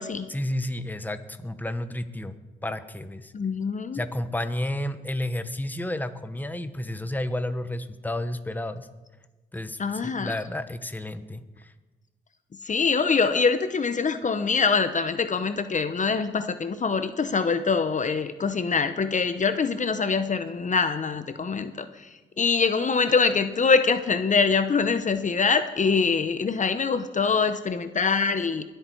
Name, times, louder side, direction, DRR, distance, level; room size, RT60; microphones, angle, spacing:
voice 1, 0.3-2.4 2.6-3.3 3.9-8.9 9.5-11.7, left 1 dB, 10° left, 10 dB, 1.0 m, -31 dB
voice 2, 3.3-4.0 9.8-10.3 12.6-28.6, left 5 dB, 40° left, 10 dB, 0.8 m, -24 dB
21.5 x 8.1 x 4.6 m, 1.2 s
cardioid pair, 65°, 19 cm